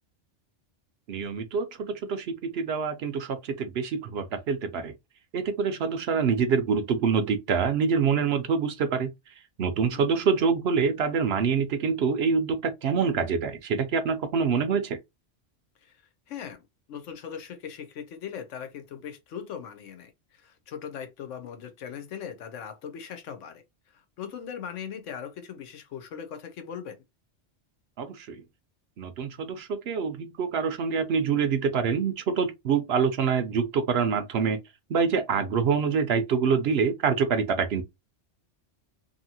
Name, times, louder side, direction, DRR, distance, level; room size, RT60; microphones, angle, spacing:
voice 1, 1.1-4.9 5.3-9.1 9.6-15.0 28.0-28.4 29.0-34.6 34.9-37.8, right 6 dB, 65° right, 0.8 m, -26 dB
voice 2, 16.3-16.6 16.9-23.6 23.9-27.0, left 8 dB, 85° left, 1.0 m, -39 dB
2.8 x 2.6 x 2.7 m
omnidirectional pair, 1.2 m